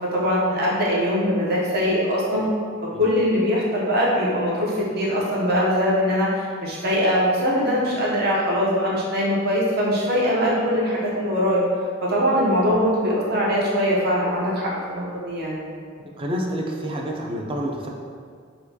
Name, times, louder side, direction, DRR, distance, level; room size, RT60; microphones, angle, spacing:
voice 1, 0.0-2.5 2.8-11.6 12.0-15.6, equal, 50° right, -5 dB, 0.7 m, -22 dB
voice 2, 16.2-17.9, equal, 25° right, 0 dB, 0.4 m, -28 dB
4.3 x 2.2 x 2.7 m, 2.1 s
head